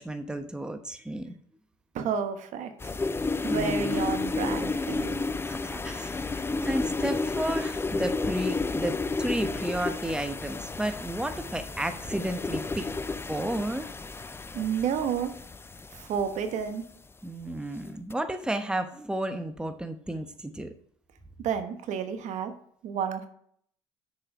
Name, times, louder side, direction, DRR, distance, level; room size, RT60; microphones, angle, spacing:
voice 1, 0.0-1.3 3.4-4.0 5.2-12.9 13.3-13.9 17.2-20.7, right 1 dB, 5° right, 8 dB, 1.0 m, -33 dB
voice 2, 1.9-2.7 3.4-5.2 14.5-15.3 15.9-16.8 21.4-22.5 22.8-23.3, right 7 dB, 60° right, 8 dB, 1.2 m, -30 dB
sound 1, 2.8-16.6 17.9-18.1, left 3 dB, 15° left, 0.5 m, -32 dB
6.6 x 5.5 x 7.3 m, 0.63 s
hypercardioid pair, 65°, 14 cm